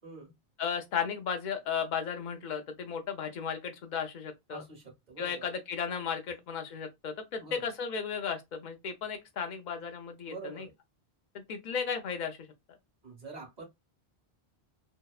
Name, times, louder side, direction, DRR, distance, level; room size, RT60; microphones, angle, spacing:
voice 1, 0.6-4.6 5.2-10.7 11.5-12.4, left 6 dB, 55° left, 0.7 m, -35 dB
voice 2, 4.5-5.4 7.4-7.7 10.2-10.7 13.0-13.6, right 3 dB, 45° right, 1.2 m, -45 dB
2.7 x 2.1 x 2.3 m
omnidirectional pair, 1.0 m